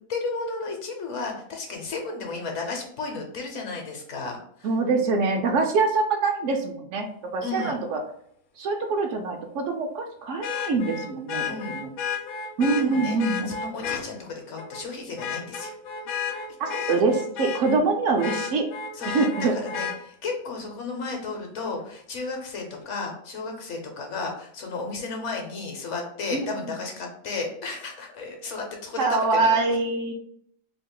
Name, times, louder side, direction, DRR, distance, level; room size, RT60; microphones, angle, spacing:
voice 1, 0.1-4.7 7.4-7.8 11.5-11.7 12.8-13.2 13.5-15.7 16.7-16.9 18.9-19.1 19.4-29.6, left 3 dB, 65° left, 2 dB, 1.0 m, -33 dB
voice 2, 4.6-7.1 7.3-8.0 8.6-11.4 11.7-11.9 12.6-13.5 16.6-18.6 19.1-19.5 26.3-26.5 29.0-30.1, right 3 dB, 70° right, 3 dB, 0.8 m, -24 dB
Vehicle horn car horn honking, 7.6-7.7 10.4-14.1 14.6-14.8 15.2-17.8 18.2-20.0 21.8-21.9, left 6 dB, 90° left, 1.0 m, -32 dB
2.8 x 2.4 x 3.7 m, 0.66 s
omnidirectional pair, 1.5 m